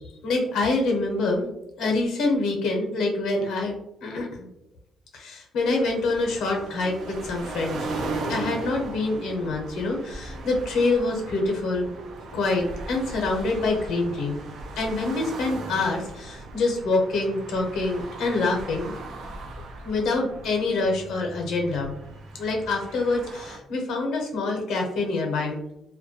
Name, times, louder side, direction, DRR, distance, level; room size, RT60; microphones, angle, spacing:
voice 1, 0.2-1.5 1.8-3.8 4.0-4.5 5.1-7.9 8.3-11.9 12.3-14.4 14.8-18.9 19.8-21.9 22.4-25.6, left 3 dB, 85° left, 1 dB, 0.6 m, -26 dB
sound 1, 5.8-23.6, right 2 dB, 70° right, 0.4 m, -37 dB
2.2 x 2.1 x 2.7 m, 0.82 s
cardioid pair, 90°, 0 cm